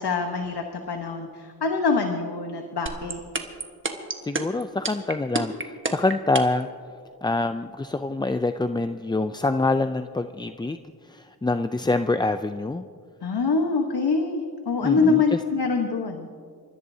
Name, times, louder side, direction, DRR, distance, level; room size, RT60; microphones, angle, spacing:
voice 1, 0.0-3.2 13.2-16.3, left 4 dB, 80° left, 3 dB, 1.2 m, -25 dB
sound 1, 2.9-6.6, right 3 dB, 30° right, 1.3 m, -27 dB
voice 2, 4.2-6.7 7.2-10.8 11.1-12.8 14.8-15.4, left 2 dB, 10° left, 9 dB, 0.3 m, -25 dB
28.0 x 14.0 x 2.7 m, 2.1 s
wide cardioid pair, 75°, 39 cm